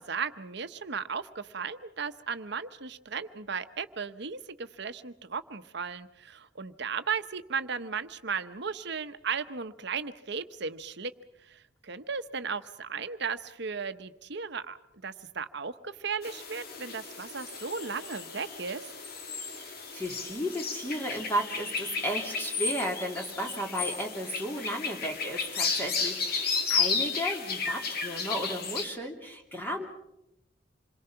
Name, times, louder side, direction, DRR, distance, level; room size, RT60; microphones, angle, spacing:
voice 1, 0.0-11.1 11.4-14.8 15.0-18.9, right 5 dB, 65° right, 11 dB, 1.0 m, -36 dB
sound 1, 16.2-28.8, left 5 dB, 55° left, 2.1 m, -33 dB
voice 2, 19.5-29.9, equal, 10° left, 2 dB, 2.8 m, -34 dB
27.5 x 22.0 x 5.8 m, 0.86 s
head